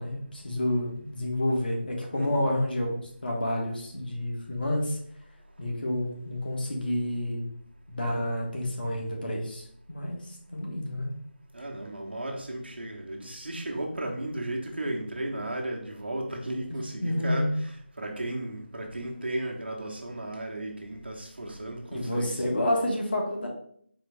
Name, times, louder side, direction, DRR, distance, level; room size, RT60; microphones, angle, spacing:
voice 1, 0.0-5.0 5.6-7.5 7.9-11.1 17.0-17.5 21.9-23.5, left 1 dB, 50° left, -1 dB, 1.2 m, -29 dB
voice 2, 2.1-2.5 11.5-22.6, right 1 dB, 60° right, 0 dB, 1.1 m, -35 dB
4.4 x 3.3 x 3.3 m, 0.64 s
figure-of-eight pair, 165°, 6 cm